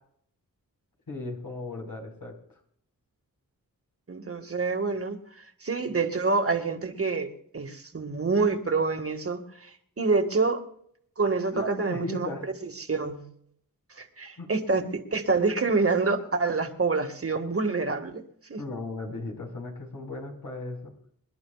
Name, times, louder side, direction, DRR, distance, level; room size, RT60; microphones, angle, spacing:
voice 1, 1.1-2.3 11.5-12.4 14.4-14.5 18.6-20.9, left 2 dB, 70° left, 1 dB, 4.9 m, -36 dB
voice 2, 4.1-5.2 5.6-10.6 11.2-12.3 12.6-13.2 14.0-18.2 18.5-18.6, right 4 dB, 40° right, 5 dB, 1.9 m, -27 dB
27.0 x 11.0 x 2.4 m, 0.65 s
wide cardioid pair, 70°, 35 cm